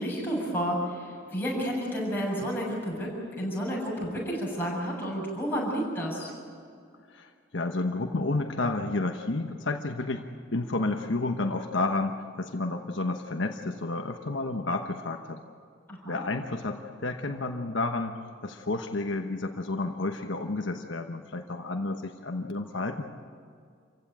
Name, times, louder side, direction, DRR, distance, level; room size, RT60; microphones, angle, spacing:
voice 1, 0.0-6.3 15.9-16.2, equal, 10° left, -5 dB, 7.5 m, -31 dB
voice 2, 7.1-10.2 10.5-15.4 16.0-18.2 18.4-23.0, left 2 dB, 70° left, 4 dB, 1.1 m, -31 dB
27.5 x 16.0 x 9.1 m, 2.2 s
head